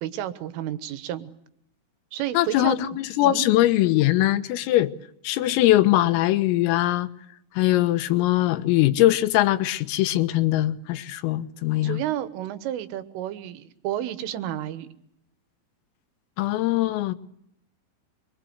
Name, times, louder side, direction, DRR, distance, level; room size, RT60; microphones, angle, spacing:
voice 1, 0.0-1.3 2.1-2.8 3.2-3.5 11.8-14.9, right 12 dB, 80° right, 3.8 m, -31 dB
voice 2, 2.4-4.9 5.2-7.1 7.6-12.0 16.4-17.2, left 15 dB, 90° left, 3.9 m, -21 dB
27.0 x 24.0 x 8.1 m
omnidirectional pair, 5.8 m